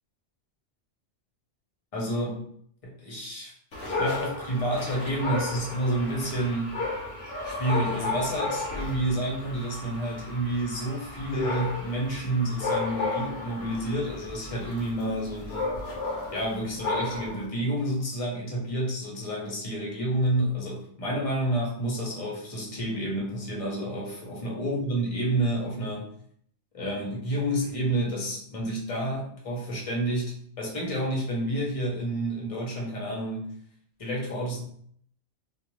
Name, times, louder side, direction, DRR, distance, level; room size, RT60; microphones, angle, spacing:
voice 1, 1.9-2.4 2.8-3.5 3.9-6.7 7.4-15.7 16.3-26.1 26.7-33.5 34.0-34.6, right 1 dB, 35° left, -3 dB, 0.8 m, -29 dB
Dog, 3.7-17.5, left 3 dB, 60° left, 0.9 m, -33 dB
2.5 x 2.4 x 3.0 m, 0.63 s
omnidirectional pair, 1.2 m